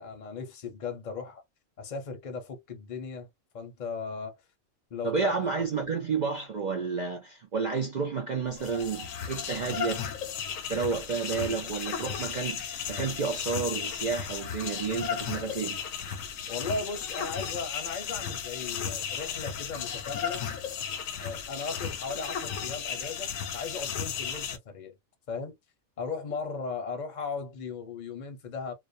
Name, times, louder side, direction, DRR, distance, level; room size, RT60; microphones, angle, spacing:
voice 1, 0.0-1.4 1.8-3.3 3.5-4.4 4.9-5.4 16.5-20.4 21.2-24.9 25.3-25.5 26.0-28.7, left 4 dB, 45° left, 0.6 m, -37 dB
voice 2, 5.0-10.0 10.7-15.8, right 5 dB, 75° right, 0.4 m, -31 dB
sound 1, 8.5-24.6, left 7 dB, 75° left, 0.9 m, -35 dB
2.4 x 2.1 x 2.5 m
omnidirectional pair, 1.4 m